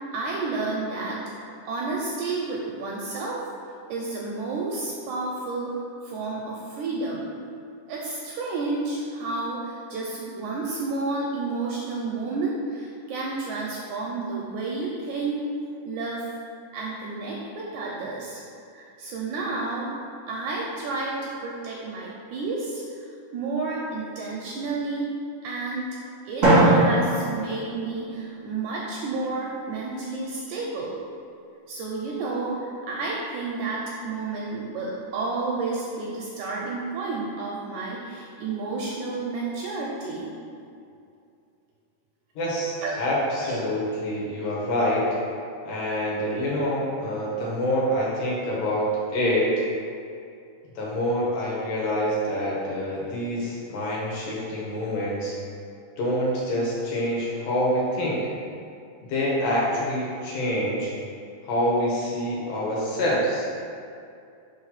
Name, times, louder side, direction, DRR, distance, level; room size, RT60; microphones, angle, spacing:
voice 1, 0.1-1.2 1.7-3.4 3.9-5.7 6.0-7.3 7.9-15.5 15.9-16.3 16.7-18.4 18.7-19.9 20.3-23.0 23.3-25.1 25.4-25.9 26.3-31.0 31.7-40.3 42.8-42.9 43.4-43.6, right 3 dB, 80° right, -3 dB, 1.8 m, -31 dB
Drum, 26.4-28.4, right 1 dB, 50° right, 0.8 m, -21 dB
voice 2, 42.4-45.1 45.7-48.9 49.1-49.5 50.8-55.4 56.0-58.2 59.1-60.9 61.4-63.5, equal, 75° left, -6 dB, 2.7 m, -26 dB
5.4 x 3.2 x 5.6 m, 2.5 s
omnidirectional pair, 3.9 m